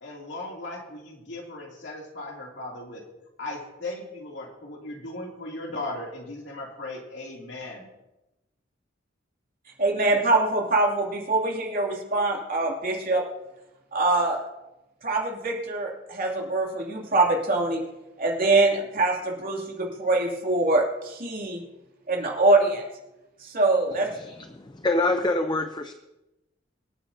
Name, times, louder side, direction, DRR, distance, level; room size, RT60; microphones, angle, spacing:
voice 1, 0.0-3.0 3.4-7.9, left 2 dB, 65° left, -1 dB, 2.8 m, -37 dB
voice 2, 9.8-13.2 13.9-14.4 15.0-17.8 18.2-21.6 22.1-22.8 23.4-24.1, right 2 dB, 50° right, -1 dB, 2.8 m, -24 dB
voice 3, 24.2-25.9, left 2 dB, 25° left, 7 dB, 0.6 m, -26 dB
25.0 x 8.9 x 2.8 m, 0.97 s
head